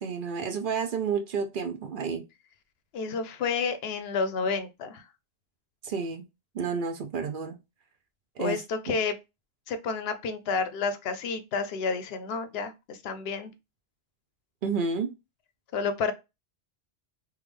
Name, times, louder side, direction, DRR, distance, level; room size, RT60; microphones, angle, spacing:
voice 1, 0.0-2.2 5.8-6.2 6.5-7.6 8.4-8.6 8.9-9.0 14.6-15.1, right 5 dB, 60° right, 0.6 m, -30 dB
voice 2, 2.9-5.0 8.4-9.2 9.7-13.5 15.7-16.1, left 5 dB, 70° left, 0.8 m, -30 dB
3.5 x 2.3 x 3.2 m
omnidirectional pair, 1.1 m